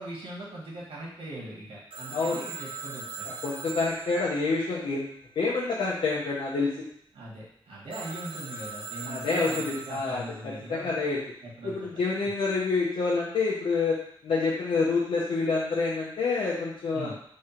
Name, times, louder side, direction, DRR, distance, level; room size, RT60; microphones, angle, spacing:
voice 1, 0.0-3.3 7.1-10.9 11.6-11.9 16.9-17.1, right 1 dB, 80° right, -5 dB, 1.8 m, -40 dB
Telephone, 1.9-5.5 7.9-10.4, right 4 dB, 65° right, 1.1 m, -41 dB
voice 2, 2.1-2.4 3.2-5.1 5.4-6.9 9.0-11.2 11.6-17.1, left 4 dB, 75° left, -6 dB, 0.8 m, -28 dB
3.7 x 3.2 x 4.4 m, 0.66 s
wide cardioid pair, 150°, 9 cm